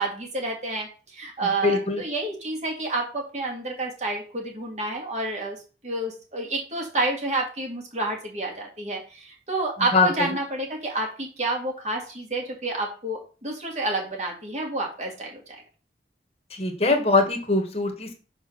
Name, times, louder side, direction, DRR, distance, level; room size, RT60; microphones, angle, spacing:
voice 1, 0.0-5.6 5.8-15.6, right 2 dB, 40° right, 0 dB, 2.0 m, -29 dB
voice 2, 1.6-2.0 9.9-10.3 16.6-18.1, left 3 dB, 35° left, 3 dB, 1.4 m, -22 dB
5.5 x 4.3 x 6.3 m, 0.36 s
head